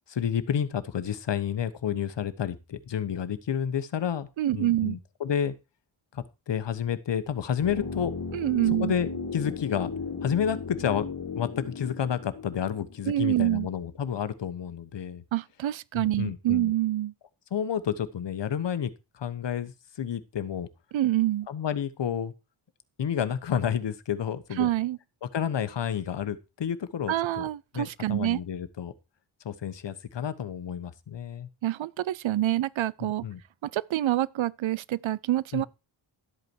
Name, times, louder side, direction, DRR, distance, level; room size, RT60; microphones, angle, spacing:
voice 1, 0.1-4.3 4.5-5.5 6.1-8.1 8.8-9.9 10.2-11.1 11.4-15.2 15.9-16.7 17.5-20.7 21.5-22.3 23.0-24.7 25.2-27.5 27.7-28.9 29.4-31.5 33.0-33.4 35.5-35.7, left 8 dB, 65° left, 1.2 m, -30 dB
voice 2, 4.4-5.0 8.3-8.9 13.1-13.7 15.3-17.1 20.9-21.5 24.6-25.0 27.1-28.4 31.6-33.3 33.6-35.7, right 14 dB, 85° right, 0.6 m, -26 dB
sound 1, 7.6-13.6 13.9-14.0, left 5 dB, 50° left, 2.1 m, -36 dB
12.5 x 8.4 x 4.6 m
wide cardioid pair, 120°, 45 cm